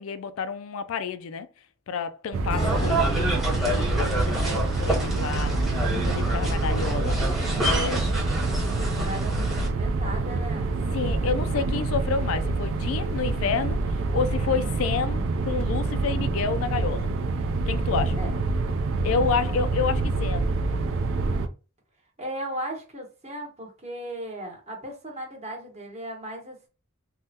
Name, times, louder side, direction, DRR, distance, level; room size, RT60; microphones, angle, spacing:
voice 1, 0.0-1.5 1.9-5.7 6.0-7.2 7.6-8.1 10.9-13.8 14.1-17.1 17.7-18.2 19.0-20.5, left 5 dB, 80° left, 0.3 m, -29 dB
sound 1, 2.3-21.5, right 3 dB, 70° right, 0.4 m, -27 dB
Acoustic guitar / Strum, 2.5-6.7, left 2 dB, 25° left, 0.6 m, -40 dB
sound 2, 2.6-9.7, right 1 dB, ahead, 0.9 m, -28 dB
voice 2, 3.7-4.6 7.8-10.7 18.2-18.4 22.2-26.7, right 1 dB, 35° right, 1.1 m, -37 dB
3.5 x 2.2 x 2.7 m
head